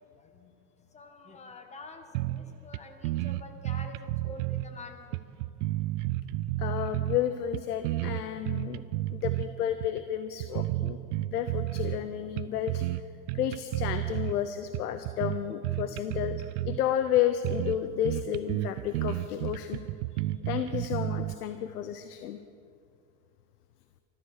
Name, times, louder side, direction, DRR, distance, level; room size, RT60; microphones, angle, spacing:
voice 1, 0.9-2.3 2.6-4.0 4.2-5.2, left 3 dB, 15° left, 5 dB, 1.6 m, -46 dB
sound 1, 2.1-2.5 2.7-2.8 3.0-4.7 5.1-7.2 7.5-9.5 9.8-10.0 10.4-12.0 12.4-13.0 13.3-14.3 14.7-16.8 17.2-17.3 17.4-17.8 18.0-21.3, right 17 dB, 55° right, 0.6 m, -31 dB
voice 2, 6.6-8.8 9.1-11.0 11.3-12.8 13.3-19.8 20.1-22.4, left 10 dB, 85° left, 10 dB, 0.9 m, -31 dB
13.5 x 12.5 x 6.6 m, 2.5 s
supercardioid pair, 130°, 44 cm